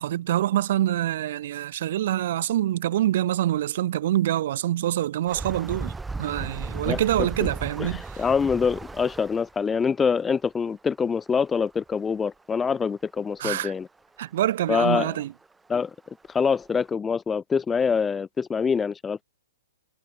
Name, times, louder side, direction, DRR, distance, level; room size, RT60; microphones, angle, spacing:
voice 1, 0.0-5.9 6.2-8.2 13.4-13.7 14.2-15.3, right 13 dB, 50° right, 3.5 m, -25 dB
sound 1, 5.3-9.6 11.5-11.6 11.9-12.0 12.8-12.9 15.4-15.5 16.0-16.1 16.6-16.8, right 3 dB, 5° right, 2.3 m, -35 dB
voice 2, 7.8-13.9 14.7-15.1 15.7-15.9 16.3-19.2, left 6 dB, 10° left, 1.5 m, -25 dB
hypercardioid pair, 150°, 0 cm